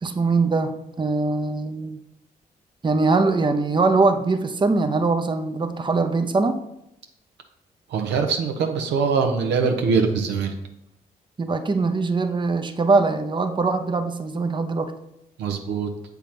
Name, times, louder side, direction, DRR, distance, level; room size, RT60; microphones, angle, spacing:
voice 1, 0.0-2.0 2.8-6.6 11.4-14.9, right 3 dB, 25° right, 8 dB, 0.7 m, -22 dB
voice 2, 7.9-10.5 15.4-15.9, right 5 dB, 85° right, 4 dB, 0.9 m, -22 dB
7.1 x 3.5 x 5.9 m, 0.84 s
supercardioid pair, 55°, 17 cm